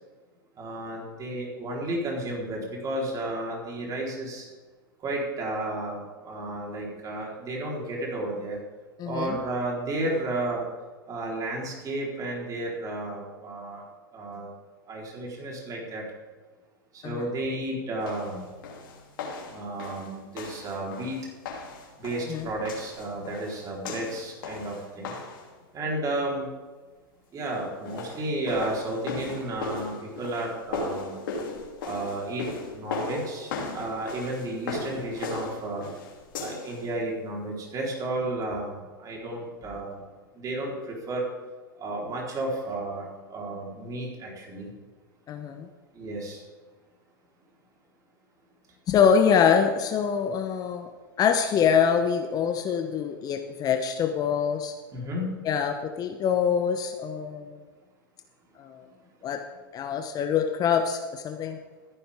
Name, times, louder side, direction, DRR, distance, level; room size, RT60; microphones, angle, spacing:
voice 1, 0.6-4.5 5.0-8.6 9.0-10.6 11.1-13.8 14.1-14.5 14.9-16.0 16.9-18.4 19.5-21.2 22.0-25.2 25.7-26.5 27.3-31.2 31.8-35.9 36.4-40.1 40.3-41.3 41.8-44.7 45.9-46.4 54.9-55.3, right 1 dB, 30° right, -2 dB, 4.0 m, -32 dB
voice 2, 9.0-9.4 17.0-17.3 22.3-22.5 45.3-45.7 48.9-50.9 51.2-54.7 55.4-57.6 58.6-58.8 59.2-59.4 59.7-61.6, left 7 dB, 35° left, 5 dB, 1.0 m, -24 dB
sound 1, 18.0-25.5 27.7-36.8, left 3 dB, 65° left, 2.9 m, -37 dB
14.5 x 10.0 x 3.6 m, 1.4 s
hypercardioid pair, 105°, 12 cm